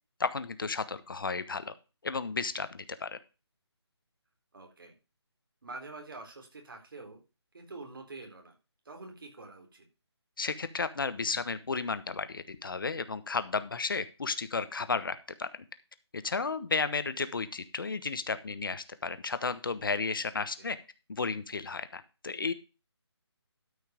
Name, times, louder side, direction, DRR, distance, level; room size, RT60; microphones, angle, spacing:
voice 1, 0.2-1.7 2.0-3.2 10.4-15.5 16.1-20.8 21.1-22.5, left 4 dB, 50° left, 13 dB, 1.2 m, -33 dB
voice 2, 4.5-5.0 5.6-7.2 7.5-8.5 8.9-9.9 20.6-20.7, right 3 dB, 50° right, 3 dB, 3.9 m, -46 dB
13.0 x 5.5 x 5.1 m, 0.30 s
hypercardioid pair, 175°, 14 cm